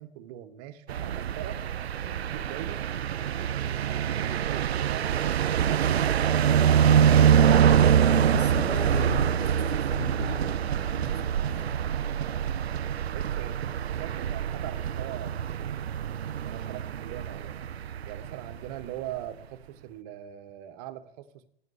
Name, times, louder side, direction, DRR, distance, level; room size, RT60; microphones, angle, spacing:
voice 1, 0.0-1.6 2.0-2.8 3.2-6.5 13.1-17.6 18.1-21.5, right 12 dB, 40° right, 1.6 m, -42 dB
sound 1, 0.9-18.8, right 8 dB, 80° right, 0.6 m, -25 dB
voice 2, 7.3-11.9, left 4 dB, 90° left, 2.8 m, -37 dB
16.0 x 9.3 x 8.2 m
hypercardioid pair, 125°, 31 cm